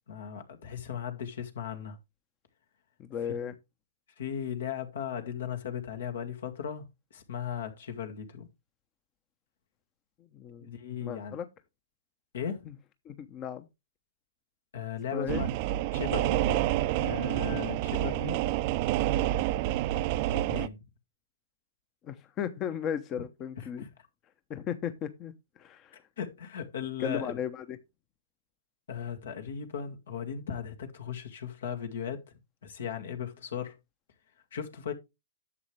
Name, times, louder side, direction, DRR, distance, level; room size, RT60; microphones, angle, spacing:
voice 1, 0.1-2.0 3.2-3.5 4.2-8.5 10.6-11.4 12.3-12.7 14.7-15.5 15.9-16.6 17.0-18.4 20.3-20.8 23.6-23.9 26.2-27.4 28.9-32.2 32.6-33.7 34.5-34.9, left 8 dB, 75° left, 2.1 m, -37 dB
voice 2, 3.1-3.5 10.3-10.7 11.0-11.4 13.0-13.7 15.1-15.4 18.1-18.4 22.0-23.8 24.5-25.3 25.6-25.9 27.0-27.8, left 8 dB, 30° left, 0.9 m, -35 dB
sound 1, 15.3-20.7, right 14 dB, 45° right, 0.5 m, -28 dB
11.0 x 7.4 x 3.3 m
hypercardioid pair, 125°, 0 cm